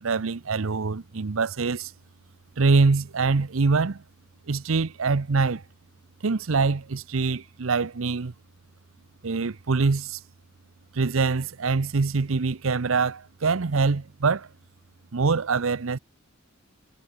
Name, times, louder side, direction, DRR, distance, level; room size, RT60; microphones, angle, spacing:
voice 1, 0.0-1.9 2.6-4.0 4.5-5.6 6.2-8.3 9.2-10.2 10.9-14.5 15.1-16.0, right 4 dB, 70° right, 0.7 m, -24 dB
head